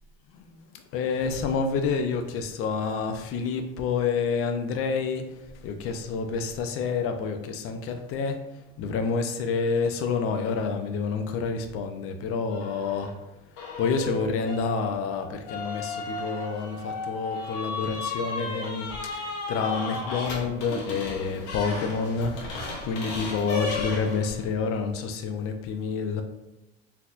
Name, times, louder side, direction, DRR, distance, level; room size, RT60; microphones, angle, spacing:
voice 1, 0.9-5.2 5.6-8.4 8.8-13.1 13.8-19.2 19.5-22.3 22.9-26.2, left 5 dB, 50° left, 7 dB, 0.6 m, -28 dB
sound 1, 12.5-13.1 13.6-24.5, left 3 dB, 70° left, 1.0 m, -35 dB
4.0 x 2.8 x 2.4 m, 0.96 s
supercardioid pair, 90°, 29 cm